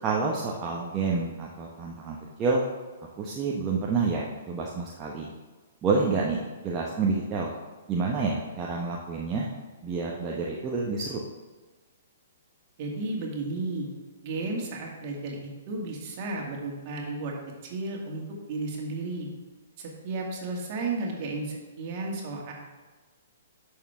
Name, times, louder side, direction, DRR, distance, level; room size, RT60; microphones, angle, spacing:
voice 1, 0.0-2.6 3.2-5.3 5.8-6.4 6.6-7.5 7.9-9.5 9.8-11.2, right 4 dB, 20° right, -3 dB, 1.1 m, -28 dB
voice 2, 12.8-13.9 14.2-17.3 17.6-18.2 18.5-19.3 19.8-22.5, right 3 dB, 40° right, -1 dB, 2.2 m, -33 dB
11.0 x 6.6 x 3.6 m, 1.3 s
figure-of-eight pair, 120°, 0 cm